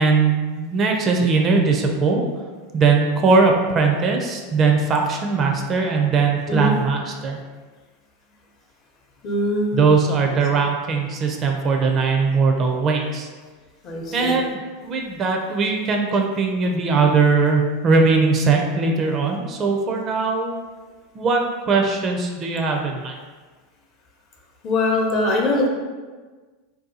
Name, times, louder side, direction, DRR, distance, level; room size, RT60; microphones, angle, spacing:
voice 1, 0.0-2.2 2.7-7.4 9.7-13.3 14.1-20.5 21.1-23.1, right 4 dB, 35° right, 2 dB, 0.4 m, -20 dB
voice 2, 9.2-9.9 13.8-14.4 24.6-25.7, left 2 dB, 45° left, 0 dB, 0.7 m, -22 dB
2.7 x 2.3 x 3.8 m, 1.4 s
hypercardioid pair, 105°, 0 cm